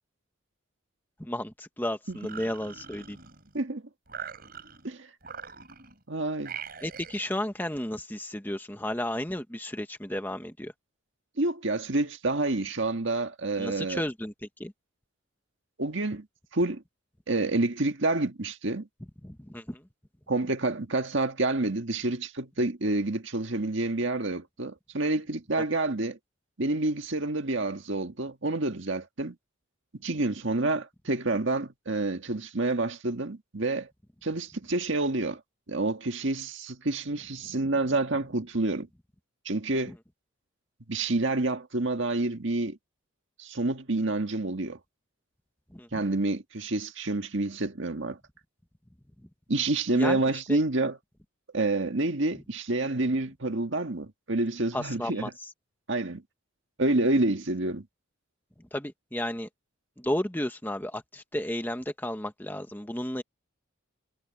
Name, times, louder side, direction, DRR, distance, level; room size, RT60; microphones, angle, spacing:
voice 1, 1.2-3.2 6.8-10.7 13.6-14.3 14.6-14.7 19.2-19.8 39.9-40.0 45.7-46.0 49.9-50.2 50.5-50.6 54.7-55.3 58.7-59.5 60.0-63.2, left 1 dB, 10° left, 1.2 m, -33 dB
sound 1, 2.1-3.6 4.1-4.9 5.2-6.0 6.4-7.3, right 7 dB, 45° right, 7.4 m, -43 dB
voice 2, 6.1-6.6 11.4-14.0 15.8-16.3 16.5-16.8 17.3-18.9 20.3-26.2 26.6-29.3 30.0-33.9 34.2-35.4 35.7-38.9 39.4-39.9 40.9-42.8 43.4-44.8 45.9-48.2 49.5-51.0 51.5-55.3 55.9-56.2 56.8-57.8, right 2 dB, 60° right, 1.8 m, -28 dB
head